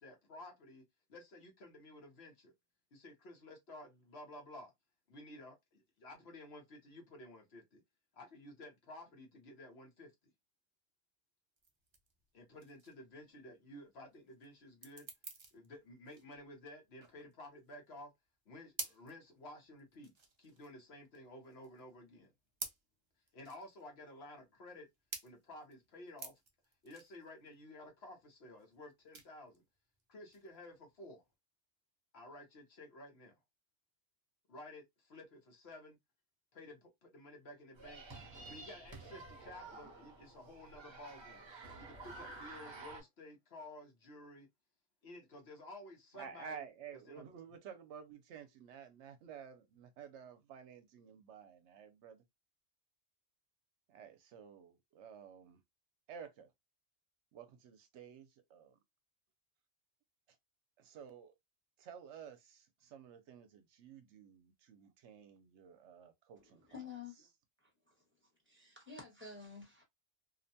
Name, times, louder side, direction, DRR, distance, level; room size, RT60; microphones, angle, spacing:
voice 1, 0.0-2.5 2.9-4.7 5.1-7.8 8.1-10.3 12.3-15.1 15.5-18.1 18.5-20.1 20.4-22.3 23.3-24.9 25.2-26.4 26.8-29.6 30.1-31.2 32.1-33.4 34.5-36.0 36.5-38.0 38.4-41.5 41.8-44.5 45.0-46.7 46.9-47.5, left 1 dB, 60° left, 1.0 m, -53 dB
sound 1, 11.6-31.3, right 4 dB, 45° right, 0.3 m, -51 dB
sound 2, 37.8-43.0, right 3 dB, 25° right, 0.8 m, -51 dB
voice 2, 46.2-52.2 53.9-55.6 56.1-56.5 57.3-58.8 60.8-61.3 61.8-66.6, right 7 dB, 75° right, 0.8 m, -52 dB
voice 3, 66.4-67.3 67.6-67.9 68.5-69.8, left 5 dB, 10° right, 1.0 m, -51 dB
2.6 x 2.1 x 2.6 m
omnidirectional pair, 1.2 m